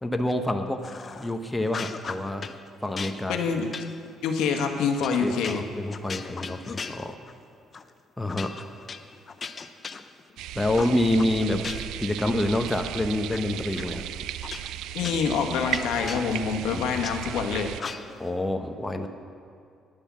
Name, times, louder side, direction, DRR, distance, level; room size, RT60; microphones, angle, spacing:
voice 1, 0.0-0.8 1.2-2.5 2.8-3.4 5.2-7.1 8.2-8.7 10.5-11.7 12.0-14.1 16.7-17.0 18.2-19.1, left 1 dB, 10° left, 5 dB, 0.9 m, -27 dB
sound 1, 0.8-1.3 1.7-2.6 3.0-7.4 7.7-7.9 8.3-10.4 10.8-12.0 12.4-13.4 13.8-13.9 14.4-17.1 17.8-18.3, left 5 dB, 35° left, 0.6 m, -38 dB
voice 2, 3.3-3.7 4.2-5.6 14.9-17.7, left 6 dB, 85° left, 4 dB, 1.2 m, -26 dB
sound 2, 10.4-17.8, right 12 dB, 85° right, 0.3 m, -36 dB
10.5 x 9.9 x 7.4 m, 2.4 s
cardioid pair, 100°, 0 cm